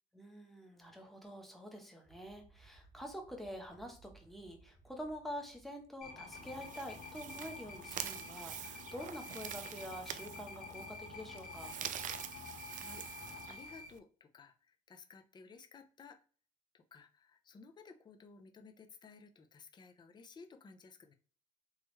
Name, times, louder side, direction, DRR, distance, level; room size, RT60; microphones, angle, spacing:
voice 1, 0.1-11.8, equal, ahead, 2 dB, 1.0 m, -47 dB
sound 1, 2.0-7.1, right 3 dB, 20° right, 0.7 m, -64 dB
sound 2, 6.0-13.9, left 4 dB, 50° left, 1.7 m, -49 dB
sound 3, 6.3-14.0, right 10 dB, 50° right, 0.4 m, -46 dB
voice 2, 12.7-16.2 16.7-21.1, left 4 dB, 25° left, 6 dB, 0.5 m, -56 dB
3.6 x 3.0 x 3.1 m, 0.41 s
cardioid pair, 110°, 17 cm